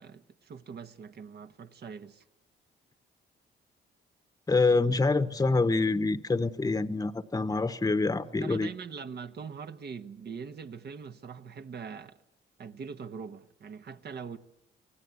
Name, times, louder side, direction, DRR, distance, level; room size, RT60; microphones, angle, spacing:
voice 1, 0.0-2.2 8.4-12.2 12.6-14.4, right 6 dB, 55° right, 1.3 m, -42 dB
voice 2, 4.5-8.7, left 3 dB, 20° left, 1.0 m, -26 dB
25.0 x 17.5 x 8.4 m
cardioid pair, 70°, 20 cm